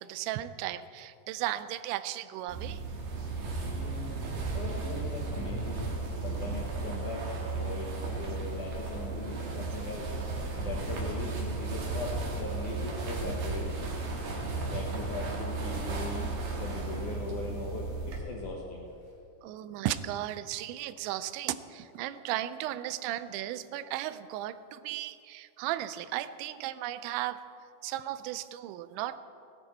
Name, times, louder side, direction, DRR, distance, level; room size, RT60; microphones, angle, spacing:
voice 1, 0.0-2.8 19.4-27.5 27.8-29.2, right 13 dB, 90° right, 14 dB, 2.9 m, -35 dB
sound 1, 2.5-18.2, right 3 dB, 55° right, 2.9 m, -34 dB
voice 2, 3.7-5.9 6.2-7.9 8.2-10.1 10.6-13.8 14.6-18.9, left 3 dB, 70° left, -1 dB, 2.0 m, -40 dB
17.5 x 11.5 x 4.4 m, 2.6 s
omnidirectional pair, 5.1 m